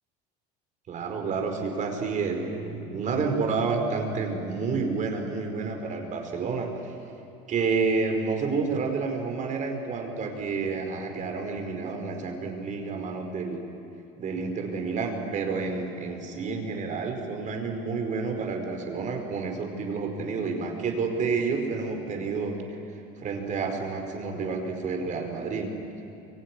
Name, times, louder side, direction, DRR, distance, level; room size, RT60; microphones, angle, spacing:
voice 1, 0.9-6.9 7.5-13.6 14.2-22.6 23.2-25.7, right 4 dB, 40° right, 3 dB, 4.9 m, -29 dB
24.0 x 24.0 x 9.8 m, 2.7 s
supercardioid pair, 125°, 20 cm